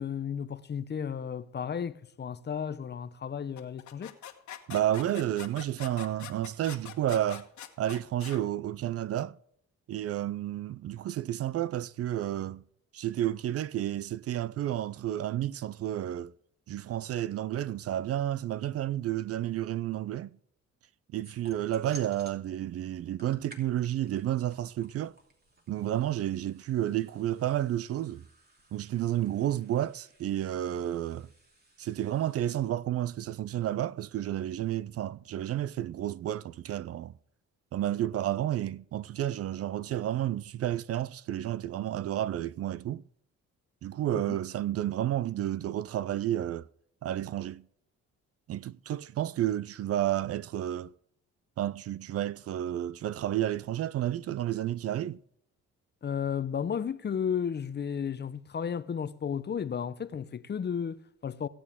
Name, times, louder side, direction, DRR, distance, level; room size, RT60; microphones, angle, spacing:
voice 1, 0.0-4.1 44.3-44.4 56.0-61.5, left 7 dB, 35° left, 0.7 m, -33 dB
sound 1, 3.6-8.4, left 10 dB, 70° left, 1.5 m, -44 dB
voice 2, 4.7-7.5 7.8-9.4 9.9-12.6 12.9-16.3 16.7-20.3 21.1-25.1 25.7-28.2 28.7-31.3 31.8-37.1 37.7-43.0 43.8-46.7 47.0-47.6 48.5-50.9 51.6-55.2, right 12 dB, 55° right, 0.4 m, -31 dB
sound 2, 21.2-22.4 23.0-32.7, equal, 30° right, 2.9 m, -56 dB
17.0 x 8.7 x 3.6 m
cardioid pair, 90°, 30 cm